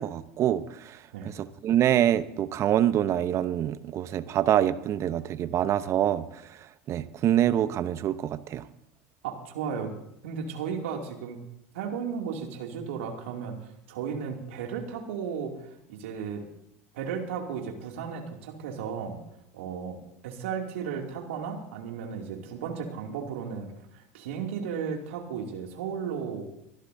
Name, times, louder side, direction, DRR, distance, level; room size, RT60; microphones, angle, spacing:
voice 1, 0.0-1.0 1.4-6.2 6.9-8.6, right 11 dB, 45° right, 13 dB, 0.9 m, -25 dB
voice 2, 9.2-9.9 10.2-11.4 11.7-16.4 16.9-19.2 19.5-20.0 20.2-26.5, right 6 dB, 75° right, 2 dB, 2.6 m, -34 dB
28.0 x 12.0 x 2.7 m, 0.79 s
hypercardioid pair, 85°, 7 cm